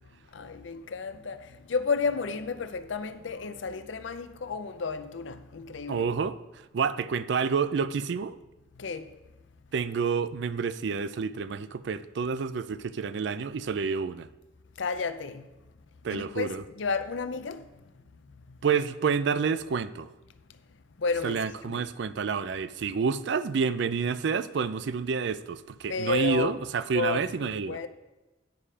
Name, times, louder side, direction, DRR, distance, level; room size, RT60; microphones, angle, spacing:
voice 1, 0.3-6.0 8.8-9.1 14.8-15.4 16.1-16.5 16.8-17.7 18.5-18.6 21.0-21.9 25.9-26.6 26.9-27.9, left 4 dB, 75° left, 0.6 m, -32 dB
voice 2, 5.9-6.4 6.7-8.4 9.7-14.3 16.0-16.6 18.6-20.1 21.2-27.8, right 5 dB, 65° right, 0.4 m, -29 dB
9.2 x 5.6 x 4.9 m
head